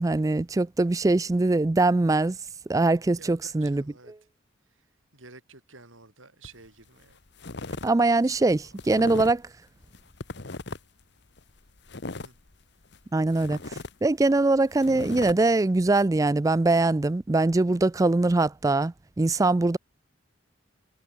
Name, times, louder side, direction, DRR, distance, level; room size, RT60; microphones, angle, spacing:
voice 1, 0.0-2.4 2.7-3.8 7.8-8.6 8.8-9.4 13.1-19.8, right 2 dB, 15° right, 0.3 m, -22 dB
voice 2, 3.2-4.1 4.7-4.8 5.1-7.2 8.0-8.8 12.2-12.3, right 4 dB, 85° right, 5.1 m, -51 dB
sound 1, 6.4-6.7 7.0-7.9 8.2-9.5 9.8-11.0 11.4-13.0 13.3-15.3, left 2 dB, 60° left, 1.4 m, -38 dB
head